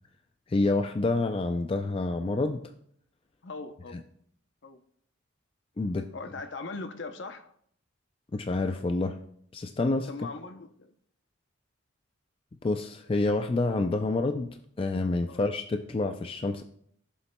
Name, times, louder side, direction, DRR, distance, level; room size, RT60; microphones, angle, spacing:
voice 1, 0.5-2.6 5.8-6.1 8.3-9.2 9.5-10.1 12.6-16.6, left 2 dB, 25° left, 0.3 m, -28 dB
voice 2, 3.4-4.0 4.6-4.8 6.1-7.5 10.1-10.9 15.3-15.4, left 3 dB, 60° left, 0.7 m, -40 dB
15.5 x 7.0 x 2.2 m
head